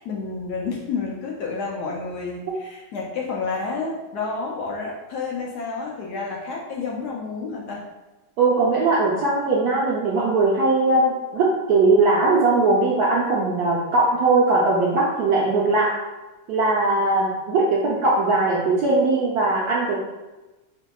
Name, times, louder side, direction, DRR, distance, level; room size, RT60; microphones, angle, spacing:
voice 1, 0.0-7.8, left 4 dB, 70° left, -2 dB, 1.0 m, -30 dB
voice 2, 8.4-15.9 16.5-20.0, right 3 dB, 70° right, -5 dB, 1.0 m, -20 dB
4.3 x 2.7 x 2.3 m, 1.1 s
omnidirectional pair, 1.9 m